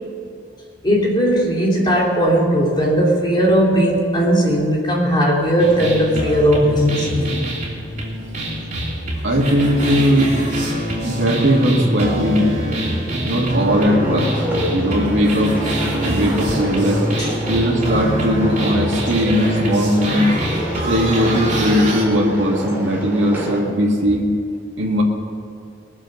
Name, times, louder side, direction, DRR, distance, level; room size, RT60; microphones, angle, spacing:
voice 1, 0.8-7.3 17.2-17.3, equal, 25° left, -3 dB, 2.7 m, -17 dB
sound 1, 5.6-22.1, right 1 dB, 40° right, 2.9 m, -24 dB
voice 2, 9.2-10.3 11.0-12.5 13.2-14.4 14.7-15.5 16.1-17.0 17.5-20.3 20.9-24.3 24.8-25.0, equal, 75° right, -2 dB, 2.2 m, -18 dB
sound 2, 13.7-23.6, equal, 10° right, 2.8 m, -28 dB
20.5 x 7.2 x 6.7 m, 2.3 s
head